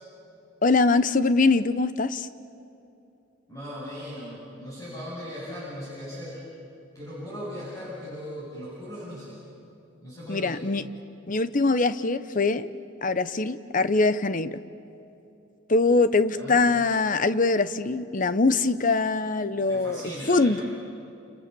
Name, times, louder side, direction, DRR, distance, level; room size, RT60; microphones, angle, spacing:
voice 1, 0.6-2.3 10.3-10.8 11.3-12.7 13.0-14.6 15.7-20.6, left 3 dB, 40° left, 13 dB, 0.9 m, -23 dB
voice 2, 3.5-6.4 6.9-9.4 10.0-10.7 16.3-16.6 19.7-20.6, equal, 15° left, -7 dB, 7.9 m, -38 dB
29.5 x 28.5 x 7.0 m, 2.8 s
head